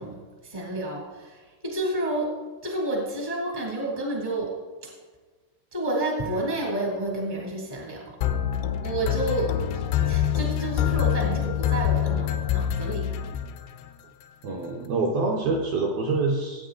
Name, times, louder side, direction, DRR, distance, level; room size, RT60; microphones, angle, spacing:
voice 1, 0.0-2.3 2.6-4.6 4.8-4.9 5.7-8.2 8.8-13.1, right 1 dB, 35° right, -2 dB, 0.5 m, -30 dB
sound 1, 8.2-13.9, left 10 dB, 85° left, 2.4 m, -25 dB
voice 2, 14.4-16.7, right 3 dB, 75° right, 0 dB, 2.2 m, -26 dB
18.0 x 8.7 x 3.8 m, 1.4 s
omnidirectional pair, 5.6 m